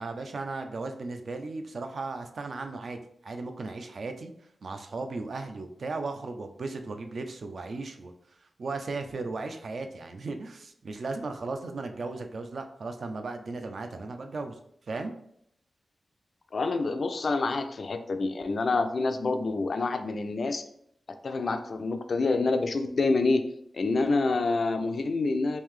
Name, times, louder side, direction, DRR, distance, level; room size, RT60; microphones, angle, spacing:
voice 1, 0.0-4.3 4.6-8.1 8.6-14.6 14.9-15.1, right 3 dB, 55° right, 6 dB, 0.4 m, -36 dB
voice 2, 16.5-20.6 21.2-23.5 23.7-25.6, left 3 dB, 50° left, 8 dB, 0.3 m, -27 dB
3.2 x 2.7 x 3.6 m, 0.72 s
wide cardioid pair, 170°, 0 cm